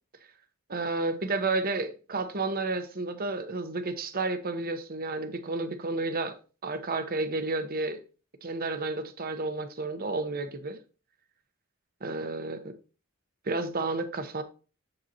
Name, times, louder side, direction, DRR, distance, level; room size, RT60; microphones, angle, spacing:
voice 1, 0.7-6.4 6.6-8.0 8.4-10.8 12.0-12.8 13.5-14.4, right 3 dB, 40° right, 0.8 m, -31 dB
7.8 x 7.3 x 2.7 m
head